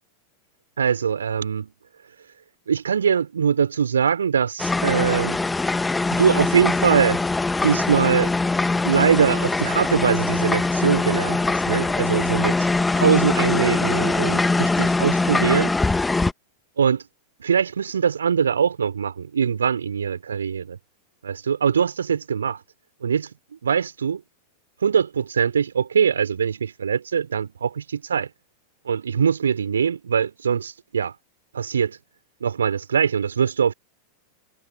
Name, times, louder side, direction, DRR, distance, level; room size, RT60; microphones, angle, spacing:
voice 1, 0.8-1.7 2.7-5.4 6.1-7.2 7.6-8.3 8.8-12.7 12.9-15.7 16.8-17.0 17.4-20.8 21.2-22.6 23.0-23.3 23.6-24.2 24.8-28.3 28.8-31.1 31.5-32.0 32.4-33.7, right 7 dB, 70° right, 4.9 m, -22 dB
sound 1, 4.6-16.3, left 3 dB, 10° left, 1.7 m, -22 dB
figure-of-eight pair, 90°, 0 cm